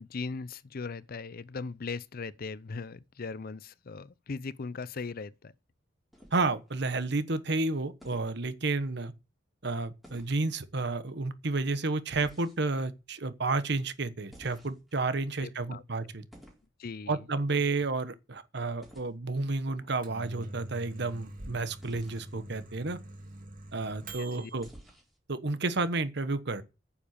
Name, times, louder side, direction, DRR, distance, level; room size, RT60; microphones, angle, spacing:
voice 1, 0.0-5.5 15.4-15.8 16.8-17.2 24.2-24.5, left 4 dB, 50° left, 0.6 m, -39 dB
sound 1, 6.1-6.8 8.0-8.3 10.0-10.5 12.1-12.8 14.3-15.0 16.3-16.7 18.8-19.1 21.8-22.3 24.6-25.2, equal, ahead, 4.4 m, -53 dB
voice 2, 6.3-9.1 9.6-16.3 17.1-23.0 23.7-24.7 25.3-26.6, right 3 dB, 65° right, 1.2 m, -31 dB
Microwave oven, 19.8-24.6, right 1 dB, 50° right, 2.3 m, -45 dB
9.7 x 7.2 x 8.7 m
head